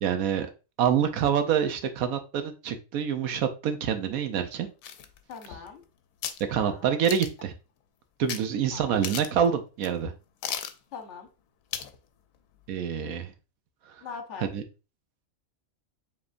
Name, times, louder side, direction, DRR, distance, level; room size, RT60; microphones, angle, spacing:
voice 1, 0.0-0.5 0.8-4.7 6.5-7.5 8.2-10.1 12.7-13.3 14.5-14.6, right 8 dB, 90° right, 8 dB, 1.2 m, -26 dB
sound 1, 4.8-5.8 6.2-6.4 7.0-7.5 8.3-8.4 8.7-8.8 9.0-9.5 9.8-9.9 10.4-10.8 11.7-12.0 12.3-12.4, left 9 dB, 80° left, 1.0 m, -35 dB
voice 2, 5.3-5.8 6.5-7.0 8.7-9.0 10.9-11.3 14.0-14.5, left 5 dB, 60° left, 4 dB, 1.2 m, -41 dB
5.1 x 3.5 x 2.5 m, 0.31 s
omnidirectional pair, 1.4 m